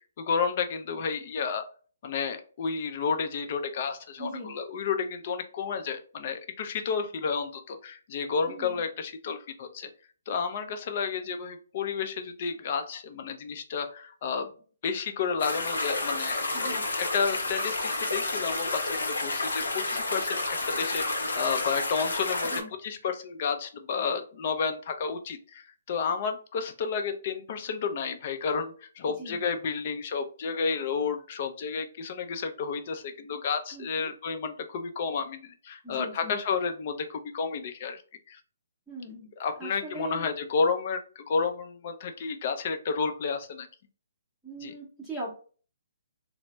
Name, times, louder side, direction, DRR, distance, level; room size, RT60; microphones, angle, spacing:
voice 1, 0.2-1.6 2.0-9.9 10.3-14.5 14.8-22.5 22.8-38.0 38.3-38.4 39.4-43.7 44.6-44.7, left 5 dB, 45° left, 7 dB, 0.5 m, -31 dB
voice 2, 4.2-4.5 8.5-8.8 16.5-16.8 22.4-22.7 29.2-29.4 33.7-34.1 35.8-36.4 38.9-39.3 39.6-40.3 44.4-45.3, right 2 dB, 5° right, -8 dB, 0.8 m, -40 dB
sound 1, 15.4-22.6, left 2 dB, 85° left, 0.7 m, -30 dB
3.2 x 2.0 x 3.0 m, 0.40 s
hypercardioid pair, 145°, 0 cm